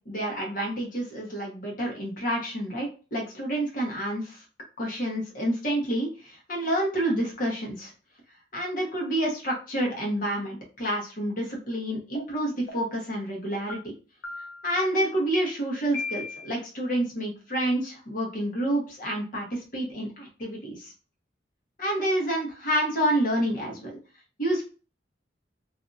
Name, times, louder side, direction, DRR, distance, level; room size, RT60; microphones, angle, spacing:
voice 1, 0.1-4.4 4.8-7.9 8.5-13.8 14.6-20.9 21.8-24.0 24.4-24.6, right 1 dB, 50° left, -1 dB, 1.0 m, -28 dB
sound 1, 12.1-12.2 12.7-13.1 13.7-13.8 14.2-14.7 15.3-15.4 15.9-16.5, left 4 dB, 80° left, 0.8 m, -36 dB
2.6 x 2.5 x 2.4 m, 0.35 s
head